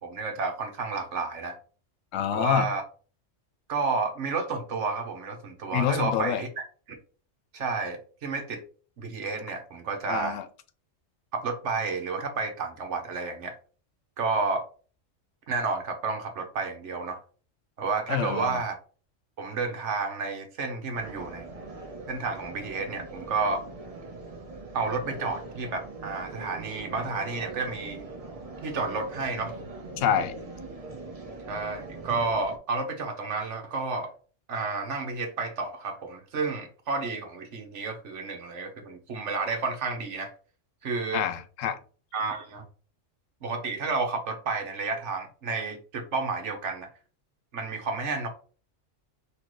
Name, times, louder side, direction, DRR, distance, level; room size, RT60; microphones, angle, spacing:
voice 1, 0.0-1.6 2.3-2.8 3.7-6.5 6.9-7.0 7.5-8.6 9.0-10.4 11.3-13.5 14.2-14.6 15.5-17.2 17.8-18.7 19.4-21.5 22.1-23.6 24.7-28.1 28.6-29.6 31.5-34.1 34.5-40.3 40.8-41.3 42.1-42.6 43.4-46.9 47.5-48.3, right 4 dB, 70° right, 4 dB, 1.3 m, -31 dB
voice 2, 2.1-2.7 5.7-6.4 10.1-10.4 18.1-18.6 30.0-30.3 41.1-41.8, left 9 dB, 80° left, 11 dB, 1.0 m, -27 dB
sound 1, 20.9-32.6, right 2 dB, 35° right, 0.7 m, -41 dB
5.7 x 2.9 x 3.1 m, 0.39 s
omnidirectional pair, 1.3 m